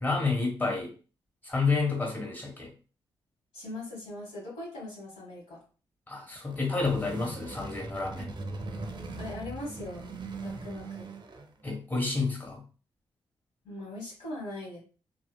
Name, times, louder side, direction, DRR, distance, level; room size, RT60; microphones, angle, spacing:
voice 1, 0.0-0.9 1.4-2.7 6.1-8.3 11.6-12.6, left 3 dB, 15° left, -1 dB, 1.5 m, -29 dB
voice 2, 3.5-5.6 9.2-10.1 10.4-11.1 13.6-14.8, left 1 dB, 80° left, -5 dB, 1.4 m, -40 dB
sound 1, 6.3-11.7, right 3 dB, 45° right, 0.5 m, -40 dB
2.8 x 2.4 x 2.3 m, 0.37 s
hypercardioid pair, 40°, 11 cm